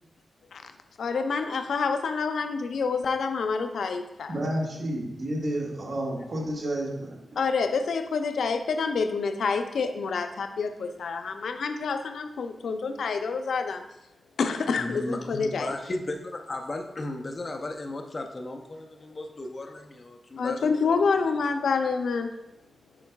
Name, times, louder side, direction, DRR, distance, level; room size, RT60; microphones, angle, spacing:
voice 1, 1.0-4.3 7.4-13.8 14.4-15.8 20.4-22.4, left 5 dB, 85° left, 7 dB, 0.5 m, -27 dB
voice 2, 4.3-7.2, right 1 dB, 60° right, -3 dB, 1.5 m, -30 dB
voice 3, 14.8-21.1, left 2 dB, 35° left, 3 dB, 0.5 m, -35 dB
8.3 x 5.3 x 2.3 m, 0.88 s
wide cardioid pair, 140°, 0 cm